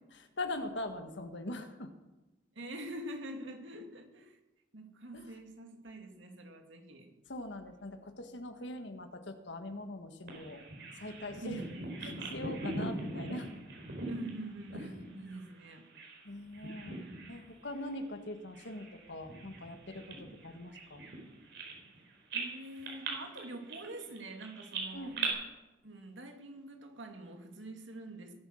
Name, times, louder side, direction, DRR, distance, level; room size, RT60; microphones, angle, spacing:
voice 1, 0.4-1.9 5.1-5.3 7.3-10.6 11.0-11.6 12.0-13.5 14.7-14.9 16.2-21.1 24.9-25.4, left 1 dB, 75° left, 7 dB, 1.6 m, -42 dB
voice 2, 2.5-4.4 4.7-7.1 11.4-11.9 14.1-15.9 22.3-25.2 25.8-28.4, right 1 dB, 85° right, 4 dB, 2.6 m, -45 dB
Bird vocalization bird call bird song, 10.3-16.2 16.5-17.4 17.7-17.9 18.5-22.0 22.3-25.3, right 3 dB, 65° right, 4.5 m, -41 dB
21.0 x 9.7 x 6.5 m, 1.1 s
head